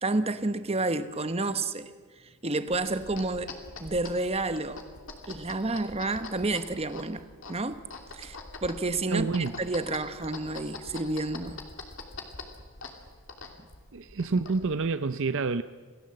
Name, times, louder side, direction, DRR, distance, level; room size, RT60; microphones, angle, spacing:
voice 1, 0.0-1.9 2.4-3.5 3.8-4.8 5.3-7.8 8.1-9.3 9.6-11.6, right 2 dB, 25° right, 11 dB, 1.1 m, -30 dB
sound 1, 2.7-14.8, left 3 dB, 60° left, 2.8 m, -44 dB
voice 2, 9.1-9.5 13.9-15.6, right 4 dB, 60° right, 12 dB, 0.6 m, -28 dB
27.5 x 17.5 x 7.8 m, 1.5 s
head